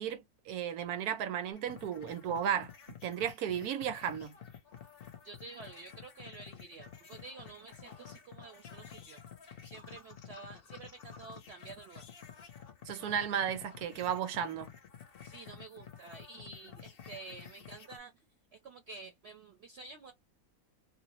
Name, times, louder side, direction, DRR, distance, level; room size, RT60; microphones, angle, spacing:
voice 1, 0.0-2.7 3.0-4.3 12.9-14.7, right 9 dB, 90° right, 1.2 m, -34 dB
sound 1, 1.5-18.0, left 7 dB, 50° left, 0.7 m, -51 dB
voice 2, 5.2-9.2 9.6-12.0 15.2-18.1 18.5-20.1, right 3 dB, 60° right, 0.7 m, -50 dB
2.7 x 2.0 x 2.9 m
omnidirectional pair, 1.6 m